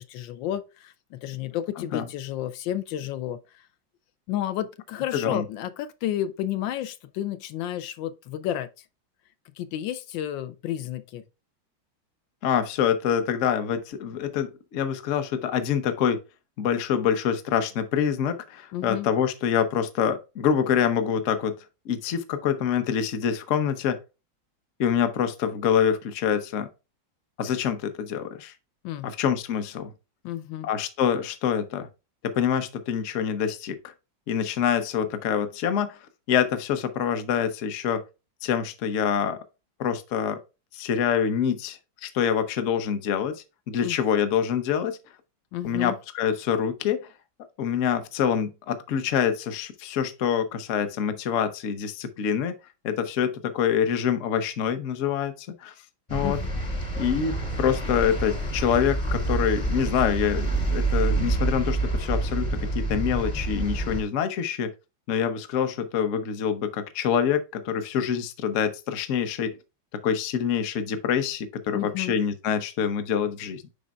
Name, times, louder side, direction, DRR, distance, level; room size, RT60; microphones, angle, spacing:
voice 1, 0.0-3.7 4.3-8.8 9.6-11.2 18.7-19.1 28.8-29.1 30.2-30.7 43.8-44.0 45.5-46.0 56.2-56.4 71.7-72.2, left 12 dB, 80° left, 1.3 m, -31 dB
voice 2, 5.1-5.4 12.4-16.2 16.6-21.5 21.9-24.0 24.8-26.7 27.4-28.5 29.0-29.9 30.6-31.9 32.3-33.7 34.3-36.0 36.3-38.0 38.4-39.4 39.8-40.4 40.7-45.0 45.6-47.0 47.6-52.5 52.8-55.7 56.1-56.4 57.0-62.5 62.7-64.7 65.1-69.5 70.0-73.6, left 8 dB, 55° left, 0.9 m, -26 dB
sound 1, 56.1-64.0, right 2 dB, 20° left, 0.9 m, -27 dB
10.5 x 4.1 x 2.3 m
omnidirectional pair, 2.1 m